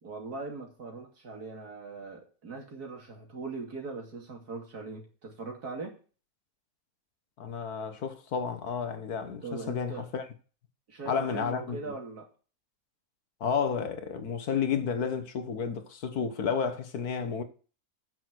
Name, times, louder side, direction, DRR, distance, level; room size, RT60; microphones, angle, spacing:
voice 1, 0.0-6.0 9.4-10.1 10.9-12.3, right 3 dB, 70° right, 3.1 m, -40 dB
voice 2, 7.4-10.3 11.1-11.9 13.4-17.4, left 6 dB, 70° left, 1.7 m, -31 dB
9.3 x 6.4 x 6.2 m
omnidirectional pair, 1.7 m